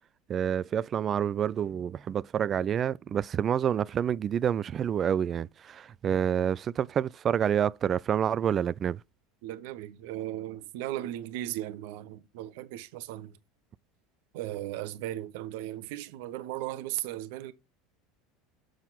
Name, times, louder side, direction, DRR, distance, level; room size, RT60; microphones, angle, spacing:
voice 1, 0.3-9.0, right 9 dB, 35° right, 0.3 m, -28 dB
voice 2, 9.4-13.4 14.3-17.5, right 14 dB, 60° right, 0.8 m, -37 dB
7.2 x 6.3 x 4.0 m
figure-of-eight pair, 70°, 0 cm